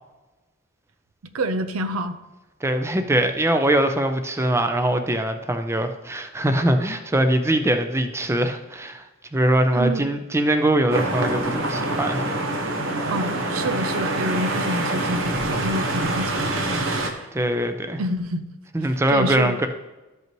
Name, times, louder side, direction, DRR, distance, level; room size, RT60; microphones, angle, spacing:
voice 1, 1.3-2.2 9.7-10.0 13.1-17.3 18.0-18.5 18.8-19.5, right 1 dB, 85° right, 9 dB, 0.6 m, -28 dB
voice 2, 2.6-9.0 9.3-12.3 17.3-18.0 18.7-19.7, right 1 dB, 15° right, 7 dB, 0.5 m, -22 dB
sound 1, 10.9-17.1, right 2 dB, 70° right, 1.0 m, -25 dB
13.0 x 5.5 x 3.0 m, 1.1 s
head